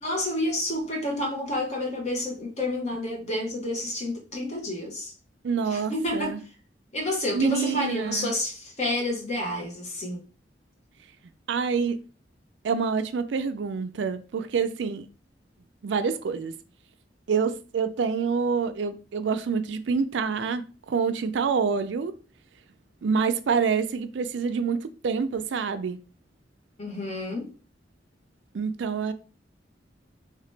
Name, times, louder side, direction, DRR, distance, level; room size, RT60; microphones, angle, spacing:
voice 1, 0.0-5.1 5.7-6.4 6.9-10.2 26.8-27.5, left 1 dB, 40° left, 1.0 m, -29 dB
voice 2, 5.4-6.4 7.3-8.3 11.5-12.0 12.6-15.0 15.8-16.5 17.3-22.1 23.0-26.0 28.5-29.1, right 5 dB, 85° right, 0.4 m, -27 dB
3.2 x 2.9 x 3.2 m
head